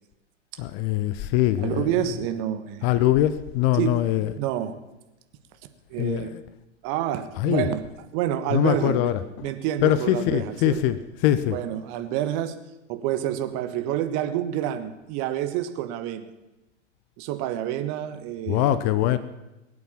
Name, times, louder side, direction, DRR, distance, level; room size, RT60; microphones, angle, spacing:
voice 1, 0.6-1.9 2.8-4.3 6.0-6.3 7.4-7.6 8.5-9.2 9.8-11.0 11.2-11.6 18.5-19.2, left 13 dB, 30° left, 14 dB, 0.7 m, -22 dB
voice 2, 1.6-2.9 3.7-4.7 5.9-6.3 6.8-7.8 8.1-9.1 9.4-10.8 11.5-12.6 12.9-16.3 17.2-18.8, right 11 dB, 35° right, 10 dB, 1.4 m, -28 dB
20.5 x 8.6 x 7.3 m, 0.99 s
figure-of-eight pair, 100°, 37 cm